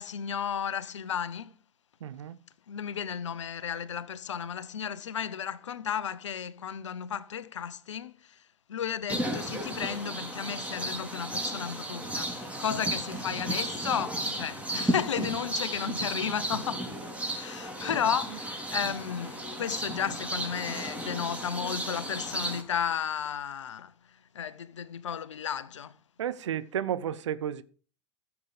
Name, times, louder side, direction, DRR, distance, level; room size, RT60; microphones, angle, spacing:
voice 1, 0.0-1.5 2.7-8.4 8.7-16.9 17.4-23.9 24.3-25.9, left 8 dB, 75° left, 0.9 m, -33 dB
voice 2, 2.0-2.4 26.2-27.6, right 9 dB, 75° right, 0.9 m, -32 dB
sound 1, 9.1-22.6, right 1 dB, 10° right, 3.6 m, -34 dB
15.0 x 7.2 x 5.0 m
figure-of-eight pair, 85°, 15 cm